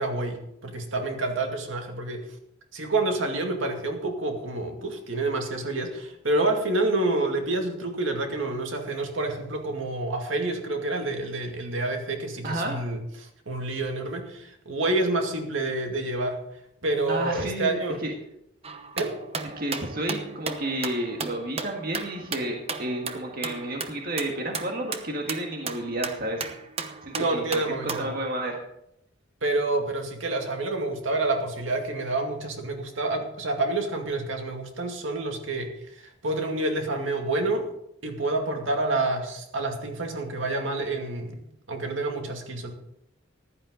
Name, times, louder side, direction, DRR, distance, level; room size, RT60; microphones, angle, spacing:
voice 1, 0.0-2.3 2.7-16.4 16.8-18.0 19.0-19.2 27.1-28.1 29.4-37.7 38.0-41.4 41.7-42.7, right 2 dB, 80° right, 3 dB, 2.3 m, -28 dB
voice 2, 12.4-12.8 17.1-18.1 19.6-26.4 27.0-27.6 28.0-28.6, right 1 dB, 50° right, 2 dB, 1.7 m, -31 dB
sound 1, 18.6-28.2, right 5 dB, 30° right, 0.9 m, -36 dB
15.0 x 11.0 x 3.9 m, 0.76 s
head